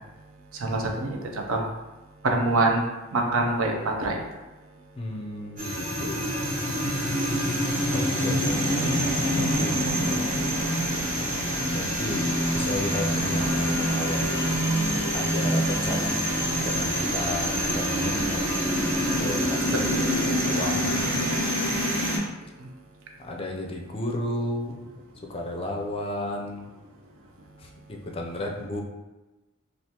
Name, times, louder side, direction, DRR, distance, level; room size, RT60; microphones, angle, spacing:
voice 1, 0.6-1.2 1.5-1.7 2.2-2.8 3.1-4.2, right 2 dB, 75° right, 2 dB, 0.5 m, -24 dB
voice 2, 4.9-6.4 7.9-9.7 10.0-10.2 11.7-14.3 15.1-16.2 16.6-18.5 19.2-21.3 23.2-24.8 25.3-26.7 27.6-28.8, left 1 dB, 25° left, 0 dB, 0.4 m, -33 dB
sound 1, 5.6-22.2, equal, 40° right, 1.1 m, -26 dB
3.5 x 2.5 x 2.9 m, 1.1 s
head